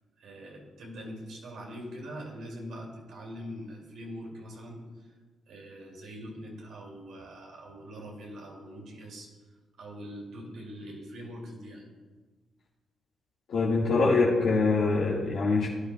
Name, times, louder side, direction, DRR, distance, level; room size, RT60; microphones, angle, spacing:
voice 1, 0.2-4.9 5.5-9.3 9.8-11.9, equal, 75° right, -1 dB, 2.4 m, -43 dB
voice 2, 13.5-15.7, left 3 dB, 70° left, -7 dB, 1.7 m, -24 dB
16.0 x 10.0 x 2.3 m, 1.4 s
cardioid pair, 70°, 0 cm